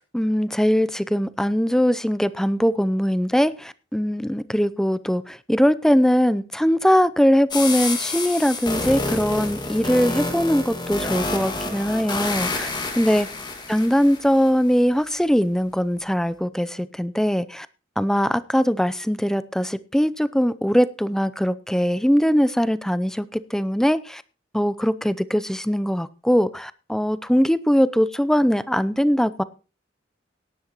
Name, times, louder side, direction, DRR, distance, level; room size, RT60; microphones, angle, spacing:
voice 1, 0.0-12.7 13.0-13.3 13.7-17.7 18.0-24.2 24.5-29.4, equal, 5° left, 15 dB, 0.5 m, -21 dB
sound 1, 7.5-14.5, left 3 dB, 25° left, 1.9 m, -28 dB
18.0 x 10.5 x 3.0 m, 0.34 s
head